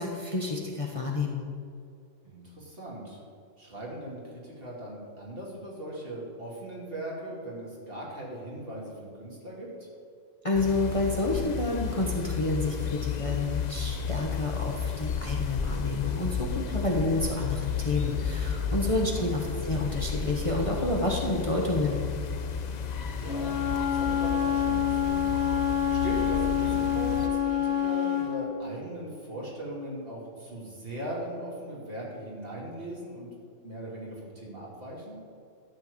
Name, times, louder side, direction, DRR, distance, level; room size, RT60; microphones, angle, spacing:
voice 1, 0.0-1.5 10.4-22.0, left 2 dB, 25° left, -2 dB, 1.2 m, -29 dB
voice 2, 2.2-3.2 3.6-9.9 18.5-19.4 23.2-23.6 23.9-25.3 25.7-33.3 33.6-35.2, right 1 dB, 50° right, -5 dB, 2.9 m, -39 dB
sound 1, 10.5-27.3, left 6 dB, 50° left, 0.6 m, -33 dB
Wind instrument woodwind instrument, 23.2-28.3, left 9 dB, 80° left, 2.2 m, -27 dB
13.0 x 4.6 x 8.4 m, 2.4 s
omnidirectional pair, 1.3 m